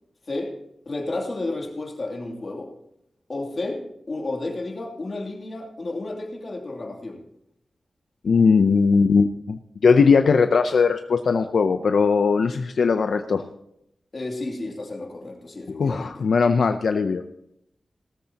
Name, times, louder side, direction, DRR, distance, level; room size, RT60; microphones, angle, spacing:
voice 1, 0.9-2.7 3.3-3.8 4.1-7.2 14.1-16.2, left 2 dB, 40° left, 0 dB, 2.7 m, -31 dB
voice 2, 8.2-13.5 15.7-17.2, left 5 dB, 75° left, 7 dB, 0.6 m, -19 dB
17.5 x 13.5 x 2.9 m, 0.78 s
wide cardioid pair, 150°, 0 cm